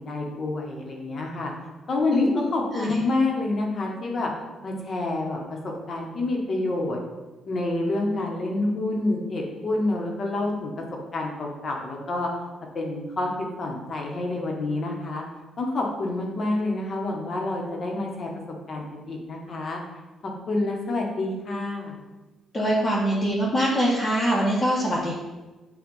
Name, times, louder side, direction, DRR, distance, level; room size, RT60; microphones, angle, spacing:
voice 1, 0.0-1.5 1.9-4.3 4.6-7.0 7.4-10.7 11.1-12.3 12.7-13.3 13.6-15.2 15.6-18.3 18.7-19.8 20.2-22.0, left 2 dB, 50° left, 0 dB, 1.4 m, -28 dB
voice 2, 22.5-25.1, equal, 25° left, -6 dB, 1.3 m, -23 dB
8.1 x 2.8 x 5.4 m, 1.2 s
cardioid pair, 90°, 0 cm